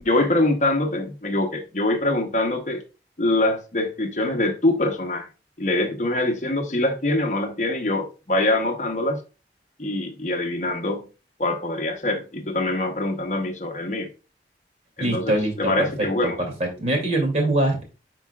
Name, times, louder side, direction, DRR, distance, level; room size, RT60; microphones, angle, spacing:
voice 1, 0.0-2.8 3.2-5.3 5.6-9.2 9.8-11.1 11.4-14.1 15.0-15.3 15.6-16.4, left 2 dB, 45° left, 0.9 m, -24 dB
voice 2, 15.0-15.7 16.0-16.3 16.6-17.8, right 1 dB, 40° right, 2.5 m, -23 dB
10.5 x 4.6 x 2.4 m
head